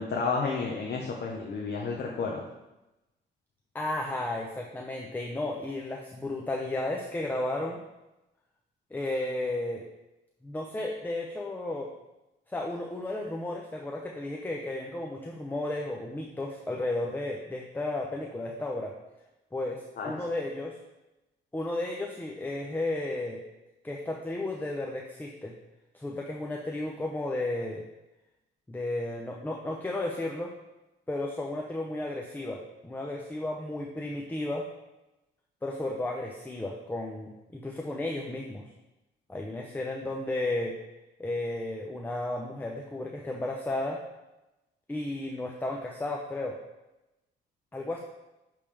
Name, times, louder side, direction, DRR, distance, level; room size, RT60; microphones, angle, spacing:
voice 1, 0.0-2.4 20.0-20.1, left 4 dB, 55° left, -1 dB, 0.9 m, -31 dB
voice 2, 3.7-7.8 8.9-9.9 10.4-11.9 12.5-18.9 19.5-20.8 21.5-23.4 23.8-25.5 25.9-27.8 28.7-30.5 31.1-34.7 35.6-38.7 39.3-40.8 41.2-44.0 44.9-46.6 47.7-48.0, left 2 dB, 10° left, 0 dB, 0.6 m, -33 dB
8.3 x 3.5 x 3.4 m, 0.98 s
cardioid pair, 90°, 20 cm